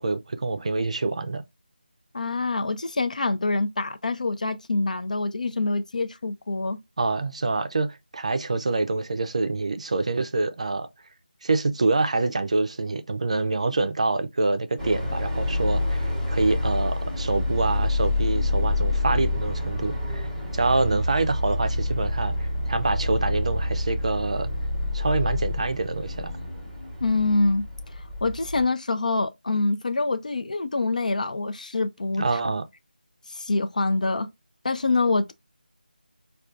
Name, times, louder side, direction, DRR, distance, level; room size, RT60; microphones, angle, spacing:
voice 1, 0.0-1.4 7.0-10.9 11.4-24.5 24.9-26.3 32.2-32.6, right 3 dB, 40° right, 0.5 m, -26 dB
voice 2, 2.1-6.8 27.0-27.6 28.2-32.4 33.3-34.3 34.6-35.3, left 3 dB, 50° left, 0.5 m, -25 dB
sound 1, 14.8-28.6, left 2 dB, ahead, 0.8 m, -27 dB
5.0 x 2.4 x 2.3 m
figure-of-eight pair, 165°, 5 cm